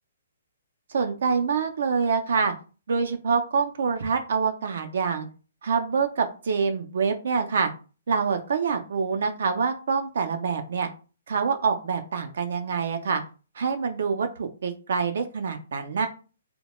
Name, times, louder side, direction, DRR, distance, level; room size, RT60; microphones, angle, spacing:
voice 1, 0.9-2.5 2.9-5.3 5.6-7.7 8.1-10.9 11.3-13.2 13.5-16.1, right 5 dB, 55° right, 6 dB, 0.4 m, -26 dB
3.0 x 2.1 x 2.9 m, 0.34 s
hypercardioid pair, 175°, 0 cm